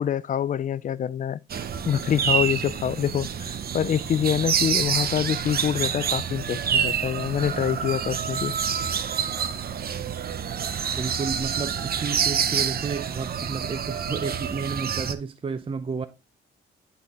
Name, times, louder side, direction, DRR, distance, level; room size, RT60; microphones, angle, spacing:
voice 1, 0.0-8.5, left 9 dB, 40° left, 0.4 m, -26 dB
sound 1, 1.5-15.1, right 7 dB, 50° right, 0.9 m, -27 dB
voice 2, 10.9-16.1, right 5 dB, 25° right, 0.5 m, -31 dB
10.0 x 4.1 x 3.6 m
cardioid pair, 90°, 20 cm